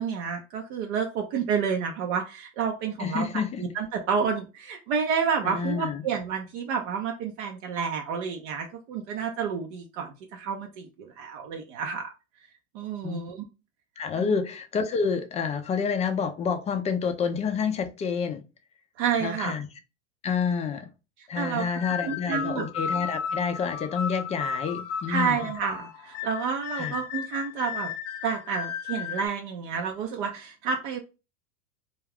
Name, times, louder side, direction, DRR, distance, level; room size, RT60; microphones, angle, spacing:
voice 1, 0.0-3.3 3.6-12.1 12.7-13.4 14.2-14.3 19.0-19.5 21.2-21.7 22.0-22.7 25.1-27.9 28.2-31.0, right 6 dB, 60° right, 0.6 m, -30 dB
voice 2, 3.0-3.6 5.4-6.0 13.0-13.2 14.0-18.4 19.2-19.7 20.2-20.9 21.3-25.5 26.8-27.0, left 6 dB, 20° left, 0.3 m, -28 dB
sound 1, 21.7-29.3, left 7 dB, 85° left, 0.5 m, -34 dB
2.3 x 2.3 x 3.4 m
hypercardioid pair, 100°, 35 cm